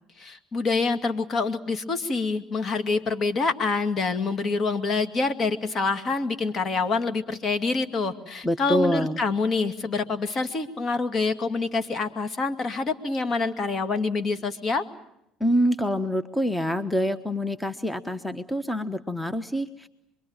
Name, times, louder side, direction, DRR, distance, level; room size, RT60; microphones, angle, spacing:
voice 1, 0.2-14.8, left 3 dB, 40° left, 9 dB, 2.4 m, -26 dB
voice 2, 8.4-9.2 15.4-19.9, equal, 10° left, 13 dB, 1.2 m, -26 dB
27.0 x 22.5 x 9.0 m, 0.82 s
hypercardioid pair, 65°, 0 cm